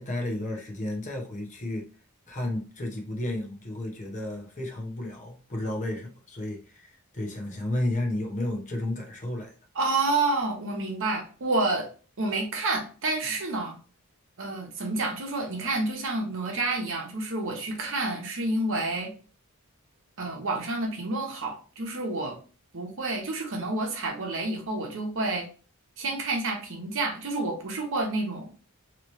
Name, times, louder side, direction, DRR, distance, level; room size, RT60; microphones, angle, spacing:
voice 1, 0.0-1.9 2.3-9.6, left 1 dB, 35° left, 0.7 m, -32 dB
voice 2, 9.7-11.9 12.2-13.8 14.4-19.1 20.2-22.4 22.7-25.5 26.0-28.6, right 2 dB, 60° right, 0.9 m, -29 dB
3.0 x 2.9 x 3.0 m
head